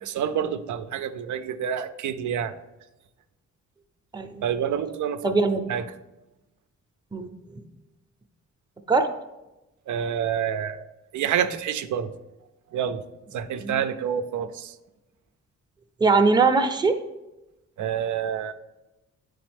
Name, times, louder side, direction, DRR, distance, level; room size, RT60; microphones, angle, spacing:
voice 1, 0.0-2.5 4.4-5.3 5.7-5.8 9.9-10.9 11.1-12.1 12.7-13.0 13.3-14.7 17.8-18.5, right 8 dB, 85° right, 10 dB, 0.5 m, -28 dB
voice 2, 5.2-5.6 7.1-7.3 8.9-9.1 13.6-13.8 16.0-17.0, right 4 dB, 15° right, 5 dB, 0.6 m, -21 dB
9.4 x 3.5 x 3.4 m, 0.99 s
cardioid pair, 100°, 29 cm